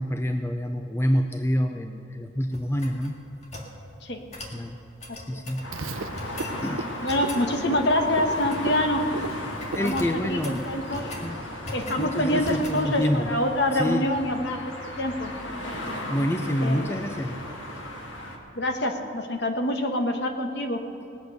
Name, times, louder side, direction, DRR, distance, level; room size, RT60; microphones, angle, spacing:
voice 1, 0.0-3.2 4.5-4.8 5.3-5.7 6.2-6.9 9.8-10.6 11.2-11.4 12.0-13.3 13.7-14.1 16.1-17.4, equal, 15° left, 6 dB, 0.4 m, -27 dB
sound 1, 2.5-3.7 4.3-4.6 5.0-5.7 6.1-6.6 7.1-7.5 8.3-8.9 9.1-9.3 9.6-11.3 11.6-12.1 12.4-12.9, left 1 dB, 35° left, 1.9 m, -40 dB
voice 2, 5.1-5.4 7.0-9.0 9.8-11.1 11.7-14.6 15.0-15.3 16.6-17.0 18.5-20.8, left 1 dB, 55° left, 5 dB, 1.3 m, -26 dB
sound 2, 5.6-18.4, left 1 dB, 75° left, 1.9 m, -36 dB
Frog, 5.7-10.9, right 3 dB, 85° right, 0.7 m, -37 dB
19.5 x 7.9 x 6.6 m, 2.9 s
head